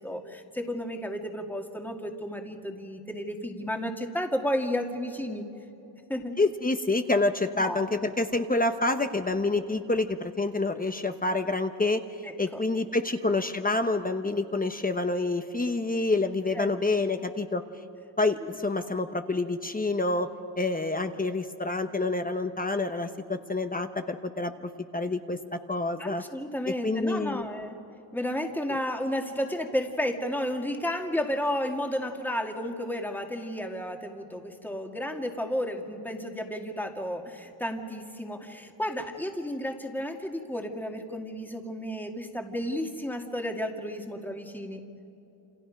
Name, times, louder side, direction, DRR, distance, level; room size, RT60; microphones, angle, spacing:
voice 1, 0.0-5.5 6.1-6.4 7.5-7.8 12.2-12.6 16.5-16.7 26.0-27.8 28.1-44.8, equal, 5° left, 3 dB, 2.0 m, -32 dB
voice 2, 6.4-17.6 18.2-20.3 20.6-26.2 26.8-27.5 28.7-28.8, left 2 dB, 20° left, 7 dB, 1.0 m, -28 dB
28.0 x 28.0 x 5.3 m, 2.8 s
wide cardioid pair, 115°, 44 cm